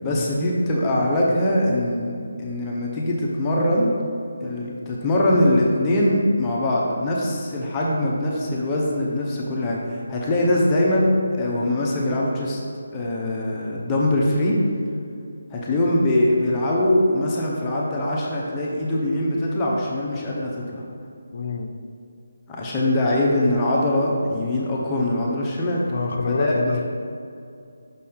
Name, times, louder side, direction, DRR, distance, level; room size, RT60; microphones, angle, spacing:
voice 1, 0.0-4.0 4.4-12.6 12.9-14.6 15.5-20.8 22.5-25.8 26.3-26.5, left 1 dB, 15° left, -5 dB, 0.8 m, -22 dB
voice 2, 21.3-21.7 25.9-26.8, left 4 dB, 55° left, 4 dB, 0.6 m, -26 dB
6.2 x 4.2 x 3.8 m, 2.5 s
figure-of-eight pair, 160°, 0 cm